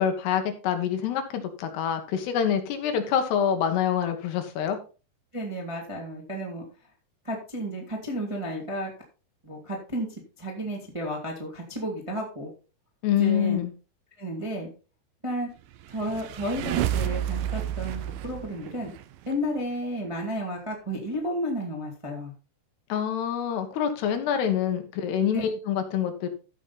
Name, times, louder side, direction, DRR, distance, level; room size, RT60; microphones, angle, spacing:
voice 1, 0.0-4.8 13.0-13.7 22.9-26.3, left 8 dB, 90° left, 6 dB, 3.5 m, -26 dB
voice 2, 5.3-6.6 7.2-8.9 9.4-10.1 10.4-12.5 13.1-13.6 14.2-14.7 15.2-15.5 15.9-18.9 19.2-22.3 25.3-25.5, equal, 15° right, -1 dB, 0.9 m, -32 dB
sound 1, 15.7-19.3, right 11 dB, 75° right, 2.1 m, -30 dB
14.0 x 5.4 x 4.0 m, 0.34 s
omnidirectional pair, 4.6 m